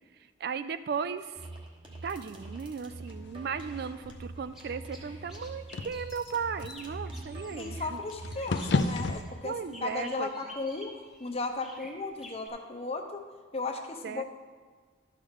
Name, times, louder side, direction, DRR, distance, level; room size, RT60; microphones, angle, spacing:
voice 1, 0.4-1.3 2.0-8.0 9.4-10.3 14.0-14.2, right 6 dB, 55° right, 12 dB, 0.3 m, -36 dB
sound 1, 1.3-9.4, right 2 dB, 25° right, 1.1 m, -44 dB
sound 2, 2.1-9.2, left 3 dB, 60° left, 0.4 m, -36 dB
sound 3, 3.8-12.5, equal, ahead, 0.9 m, -51 dB
voice 2, 7.6-13.2 13.5-14.2, left 3 dB, 30° left, 5 dB, 0.7 m, -35 dB
12.0 x 6.5 x 3.6 m, 1.5 s
head